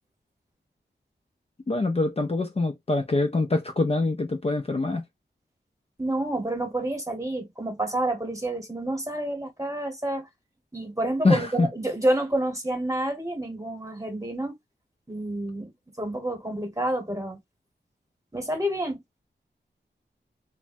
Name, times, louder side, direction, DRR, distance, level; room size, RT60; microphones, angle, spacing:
voice 1, 1.7-5.0 11.2-11.7, left 3 dB, 35° left, 0.5 m, -24 dB
voice 2, 6.0-10.3 10.7-14.6 15.1-15.7 16.0-17.4 18.3-19.2, right 1 dB, 15° right, 1.1 m, -29 dB
3.3 x 2.1 x 2.5 m
wide cardioid pair, 85°, 19 cm